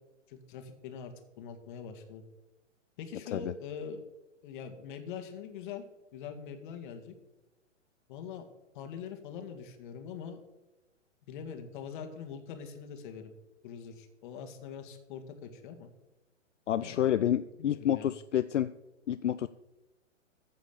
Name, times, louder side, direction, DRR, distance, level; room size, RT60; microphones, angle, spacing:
voice 1, 0.3-2.2 3.0-4.0 4.4-5.8 6.1-7.1 8.1-8.4 8.7-10.4 11.3-13.3 13.6-15.9 16.8-17.2 17.6-18.1, left 7 dB, 40° left, 6 dB, 1.8 m, -43 dB
voice 2, 16.7-18.7 19.1-19.5, left 10 dB, 75° left, 13 dB, 0.5 m, -29 dB
15.0 x 5.0 x 6.8 m, 1.1 s
figure-of-eight pair, 120°, 37 cm